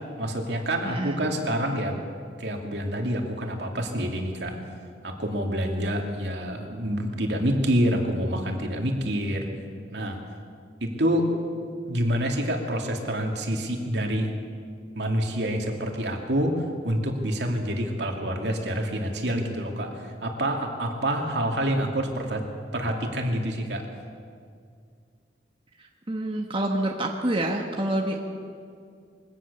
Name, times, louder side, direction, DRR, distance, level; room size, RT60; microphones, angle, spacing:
voice 1, 0.2-2.0 2.4-4.6 5.0-9.5 9.9-10.2 10.8-11.3 11.9-14.3 14.9-22.4 22.7-23.9, equal, 70° right, 2 dB, 2.8 m, -27 dB
voice 2, 0.8-1.2 26.1-28.2, right 1 dB, 30° right, 1 dB, 1.4 m, -27 dB
22.5 x 17.0 x 7.0 m, 2.3 s
head